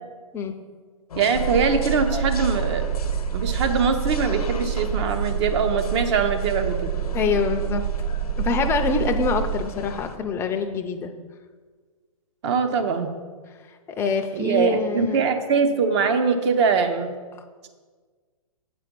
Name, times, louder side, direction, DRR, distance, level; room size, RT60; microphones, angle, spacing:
sound 1, 1.1-10.2, left 5 dB, 85° left, 0.8 m, -38 dB
voice 1, 1.1-2.9 3.3-6.8 12.4-13.1 14.3-17.1, right 5 dB, 50° right, 8 dB, 0.8 m, -22 dB
sound 2, 1.3-9.6, right 9 dB, 65° right, 0.4 m, -27 dB
voice 2, 7.1-7.8 8.4-11.1 13.9-15.2, left 5 dB, 15° left, 6 dB, 0.5 m, -25 dB
8.0 x 4.3 x 5.2 m, 1.5 s
hypercardioid pair, 130°, 19 cm